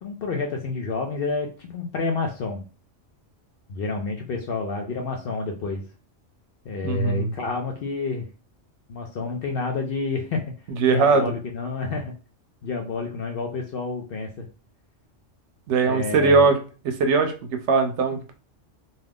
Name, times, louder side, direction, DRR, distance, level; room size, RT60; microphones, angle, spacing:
voice 1, 0.0-2.6 3.7-5.8 6.6-8.3 8.9-10.4 10.8-12.1 12.6-14.5 15.8-16.4, left 4 dB, 60° left, 2 dB, 0.6 m, -29 dB
voice 2, 6.8-7.3 10.8-11.2 15.7-16.6 16.8-17.3 17.7-18.3, right 4 dB, 70° right, 6 dB, 0.8 m, -20 dB
2.6 x 2.3 x 3.4 m, 0.35 s
omnidirectional pair, 1.3 m